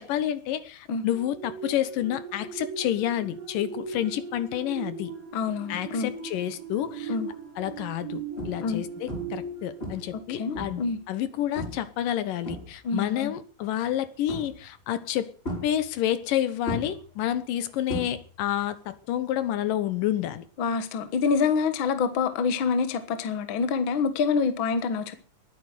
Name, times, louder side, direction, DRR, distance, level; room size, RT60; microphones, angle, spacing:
voice 1, 0.0-5.1 5.7-7.2 7.6-15.3 15.6-20.5, left 11 dB, 75° left, 2.6 m, -29 dB
sound 1, 1.1-11.0 11.4-11.6, right 5 dB, 55° right, 7.0 m, -39 dB
voice 2, 5.3-6.1 7.1-7.3 8.6-8.8 10.1-11.0 12.8-13.3 20.6-25.1, left 5 dB, 55° left, 1.4 m, -26 dB
sound 2, 6.7-7.1 7.6-7.8 8.4-8.8 9.1-9.5 9.8-10.9 11.6-11.9 12.2-13.1 14.3-14.8 15.4-16.3 16.7-18.6 18.8-19.2 21.3-21.4, equal, 15° left, 5.4 m, -36 dB
20.5 x 9.2 x 6.5 m
omnidirectional pair, 4.1 m